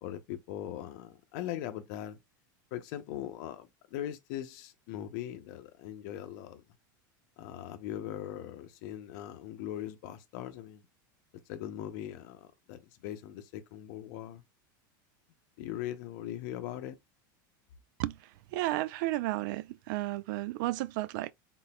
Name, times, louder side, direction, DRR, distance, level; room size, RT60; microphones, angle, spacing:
voice 1, 0.0-2.2 2.7-6.6 7.4-10.8 11.5-14.4 15.6-17.0, left 12 dB, 65° left, 0.6 m, -40 dB
voice 2, 18.0-21.3, right 17 dB, 65° right, 0.4 m, -33 dB
4.0 x 3.8 x 2.2 m
supercardioid pair, 120°, 11 cm